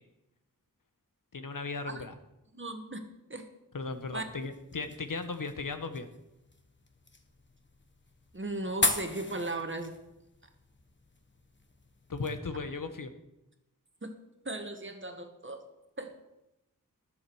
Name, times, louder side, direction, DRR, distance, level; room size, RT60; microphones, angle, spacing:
voice 1, 1.3-2.1 3.7-6.1 12.1-13.1, left 4 dB, 70° left, 9 dB, 1.1 m, -36 dB
voice 2, 2.5-3.0 3.3-3.5 4.1-4.2 8.3-9.9 14.0-14.1 14.4-15.6 16.0-16.1, right 2 dB, 35° right, 6 dB, 1.6 m, -36 dB
sound 1, 3.9-12.4, left 3 dB, 35° left, 1.3 m, -39 dB
19.5 x 7.3 x 4.7 m, 0.93 s
wide cardioid pair, 70°, 34 cm